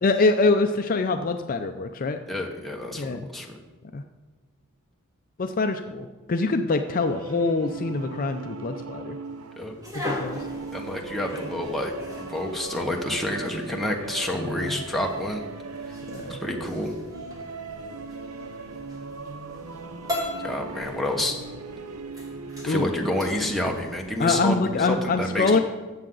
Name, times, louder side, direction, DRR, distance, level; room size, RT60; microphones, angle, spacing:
voice 1, 0.0-2.2 2.9-3.3 3.9-4.0 5.4-9.2 9.9-10.4 14.4-14.7 16.1-16.4 22.6-22.9 24.2-25.6, left 3 dB, 40° left, 7 dB, 0.4 m, -24 dB
voice 2, 2.3-3.6 9.6-9.7 10.7-11.9 12.2-15.4 16.3-16.9 20.4-21.4 22.6-25.6, left 1 dB, ahead, 0 dB, 1.1 m, -29 dB
sound 1, 6.9-24.1, right 4 dB, 80° right, 0.8 m, -39 dB
sound 2, 9.8-25.1, left 1 dB, 15° right, 1.9 m, -40 dB
13.5 x 7.7 x 3.9 m, 1.3 s
head